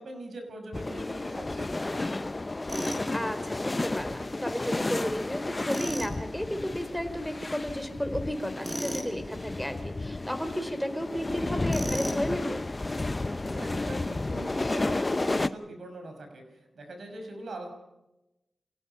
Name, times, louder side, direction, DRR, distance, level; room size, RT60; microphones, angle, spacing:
voice 1, 0.0-2.3 13.3-17.7, right 1 dB, 75° right, 4 dB, 6.0 m, -42 dB
sound 1, 0.7-15.5, left 2 dB, 30° left, 0.8 m, -32 dB
Tools, 2.7-3.1 5.7-6.1 8.6-9.1 11.7-12.3, equal, 25° right, 6.0 m, -34 dB
voice 2, 3.1-12.6, equal, 5° left, 7 dB, 3.7 m, -33 dB
27.5 x 17.5 x 5.7 m, 0.94 s
cardioid pair, 55°, 0 cm